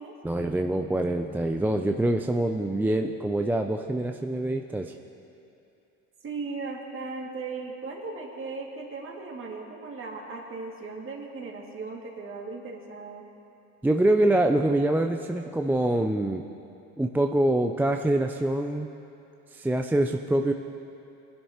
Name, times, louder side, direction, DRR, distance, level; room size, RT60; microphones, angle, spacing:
voice 1, 0.2-4.9 13.8-16.4 17.0-18.9 19.5-20.5, right 1 dB, 5° right, 4 dB, 0.4 m, -25 dB
voice 2, 6.2-13.2, right 4 dB, 35° right, 0 dB, 2.2 m, -37 dB
19.5 x 11.0 x 3.0 m, 2.8 s
supercardioid pair, 80°, 37 cm